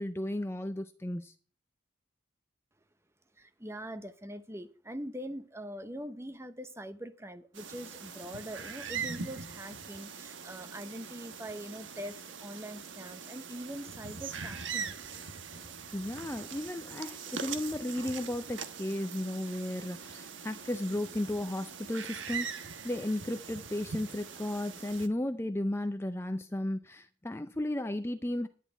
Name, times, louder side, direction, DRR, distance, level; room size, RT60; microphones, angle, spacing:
voice 1, 0.0-1.3 15.9-28.5, left 1 dB, 15° left, 0.5 m, -34 dB
voice 2, 3.4-14.9, equal, 15° right, 0.8 m, -43 dB
sound 1, 7.5-25.1, right 6 dB, 80° right, 1.2 m, -42 dB
11.0 x 10.0 x 4.4 m
head